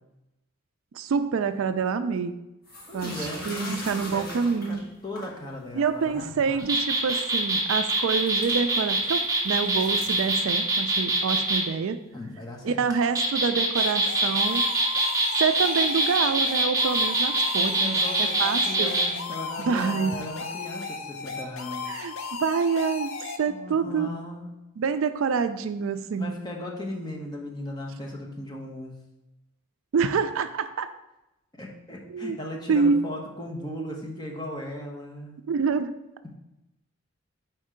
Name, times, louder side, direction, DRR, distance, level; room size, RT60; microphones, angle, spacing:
voice 1, 0.9-2.4 2.9-4.9 5.7-12.0 12.6-14.6 15.4-18.9 19.6-20.2 21.9-23.1 23.4-24.1 24.8-26.4 29.9-30.9 32.1-32.4 32.7-33.0 35.4-35.9, right 5 dB, 65° right, 10 dB, 0.3 m, -27 dB
sound 1, 2.6-5.4 5.9-6.6 7.2-7.3 7.9-11.0, left 1 dB, 45° left, 1.4 m, -41 dB
voice 2, 2.9-6.6 12.1-12.8 17.5-21.9 23.5-24.5 26.2-28.9 31.6-35.4 36.2-36.4, left 1 dB, 20° left, -1 dB, 0.8 m, -37 dB
sound 2, 6.6-11.6 12.9-19.1, right 2 dB, 15° right, 0.8 m, -24 dB
sound 3, 13.8-23.4, left 4 dB, 60° left, 0.6 m, -36 dB
4.5 x 4.3 x 5.0 m, 0.96 s
head